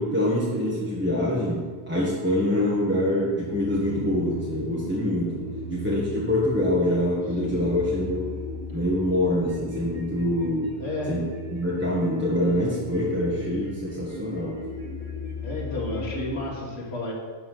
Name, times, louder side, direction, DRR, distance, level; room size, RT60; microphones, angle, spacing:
voice 1, 0.0-8.5 8.7-10.8 11.1-11.2 11.5-14.6, left 1 dB, 10° right, -8 dB, 1.5 m, -25 dB
sound 1, 2.5-16.5, left 1 dB, 35° right, 1.6 m, -37 dB
voice 2, 7.4-7.7 10.8-11.2 15.4-17.1, left 2 dB, 75° left, -3 dB, 1.8 m, -32 dB
11.5 x 3.9 x 6.2 m, 1.4 s
omnidirectional pair, 1.1 m